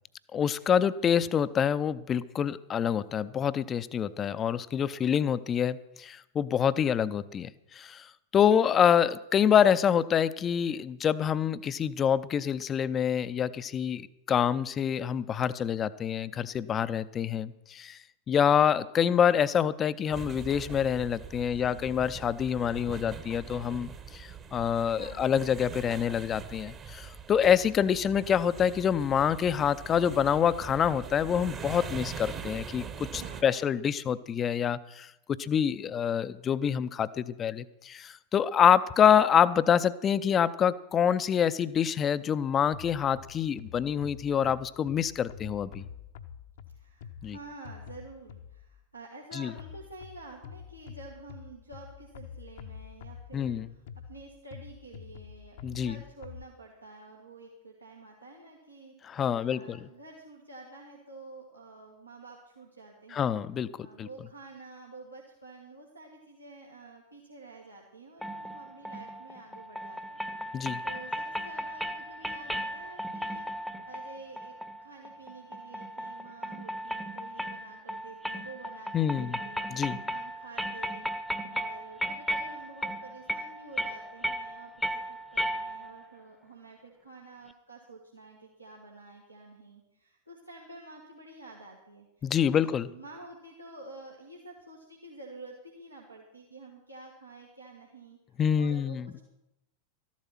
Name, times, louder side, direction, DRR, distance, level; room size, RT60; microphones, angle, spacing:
voice 1, 0.3-7.5 7.8-8.0 8.3-18.0 18.3-32.8 33.1-45.8 47.2-47.4 49.4-49.5 53.3-53.7 55.6-56.0 59.1-59.8 63.1-64.1 70.5-70.8 78.9-79.4 79.7-80.0 92.2-92.9 98.4-99.0, left 8 dB, 25° left, 16 dB, 0.5 m, -26 dB
sound 1, 20.1-33.4, right 7 dB, 25° right, 1.1 m, -42 dB
voice 2, 21.6-21.9 24.9-25.4 33.1-33.8 46.7-63.3 63.8-70.2 70.8-74.6 74.8-81.1 81.5-98.2 98.6-99.2, right 3 dB, 85° right, -3 dB, 1.8 m, -49 dB
sound 2, 42.7-48.8 49.6-56.4, left 8 dB, 55° left, 0.8 m, -47 dB
sound 3, 68.2-86.1, equal, ahead, 0.8 m, -36 dB
13.5 x 11.5 x 5.8 m, 0.86 s
figure-of-eight pair, 90°, 0 cm